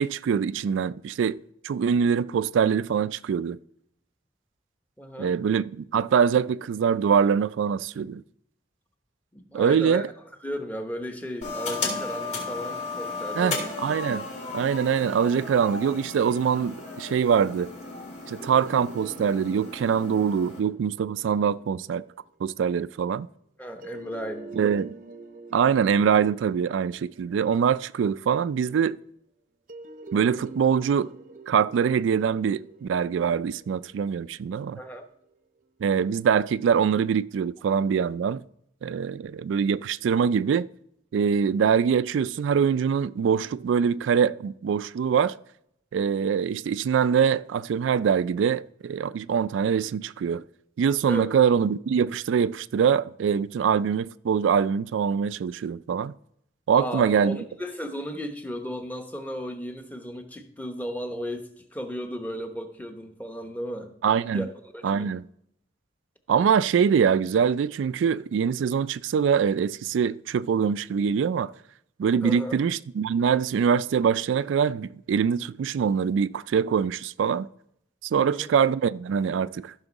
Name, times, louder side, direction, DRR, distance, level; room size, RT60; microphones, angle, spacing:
voice 1, 0.0-1.4 1.6-3.6 5.2-8.2 9.5-10.1 13.4-14.3 14.5-17.7 18.3-22.0 22.4-23.3 24.6-24.9 25.5-29.0 30.1-31.1 31.5-34.8 35.8-38.4 38.8-40.7 41.1-45.3 45.9-50.4 50.8-56.1 56.7-57.4 64.0-64.5 64.8-65.2 66.3-71.5 72.0-77.5 78.0-79.7, right 7 dB, 85° right, 0.3 m, -24 dB
voice 2, 5.0-5.3 9.3-10.0 10.4-13.7 23.6-24.8 34.7-35.1 51.1-51.3 56.7-63.9 64.3-64.5 64.7-65.1 72.2-72.6 78.1-78.5, equal, 10° left, 0.9 m, -35 dB
sound 1, 11.4-20.6, left 3 dB, 40° left, 2.5 m, -35 dB
sound 2, 18.4-22.2 23.8-28.3 29.7-34.9, right 3 dB, 45° right, 0.6 m, -46 dB
14.5 x 6.0 x 4.0 m
head